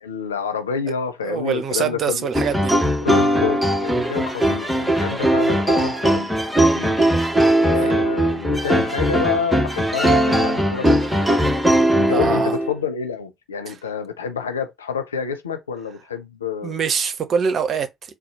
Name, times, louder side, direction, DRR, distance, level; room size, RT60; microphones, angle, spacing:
voice 1, 0.0-2.3 3.0-6.3 6.6-7.1 7.6-11.0 11.9-16.8, left 6 dB, 85° left, 0.6 m, -28 dB
voice 2, 1.2-2.8 7.8-7.9 12.1-12.6 13.7-13.8 16.6-18.1, right 6 dB, 50° right, 0.8 m, -24 dB
sound 1, 2.3-12.8, right 1 dB, ahead, 1.4 m, -19 dB
4.1 x 2.3 x 4.2 m
figure-of-eight pair, 45°, 0 cm